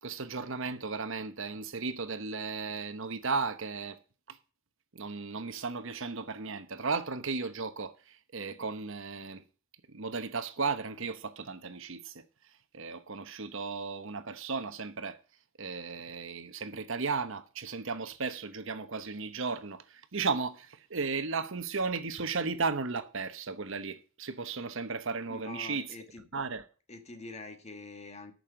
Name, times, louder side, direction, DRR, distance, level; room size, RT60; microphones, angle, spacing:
voice 1, 0.0-4.0 4.3-4.4 4.9-9.4 9.9-12.1 12.7-15.2 15.6-25.9 26.3-26.6, right 4 dB, 65° right, 1.1 m, -35 dB
voice 2, 25.3-26.3 26.9-28.3, left 3 dB, 30° left, 1.5 m, -45 dB
9.0 x 6.5 x 7.5 m
head